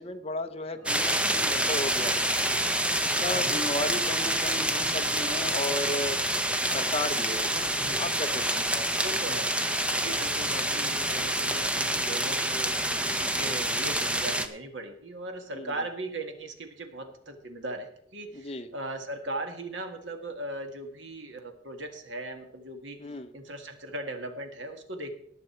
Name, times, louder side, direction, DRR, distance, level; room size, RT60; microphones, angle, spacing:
voice 1, 0.0-2.3 3.0-6.2 6.7-9.0 15.5-15.7 18.3-18.7 23.0-23.3, left 2 dB, 30° left, 6 dB, 0.6 m, -34 dB
sound 1, 0.9-14.5, right 1 dB, 5° right, 0.7 m, -27 dB
voice 2, 9.0-9.5 9.9-12.7 13.0-23.0 23.3-25.2, right 1 dB, 75° right, 6 dB, 1.8 m, -38 dB
19.0 x 6.8 x 4.4 m, 0.72 s
head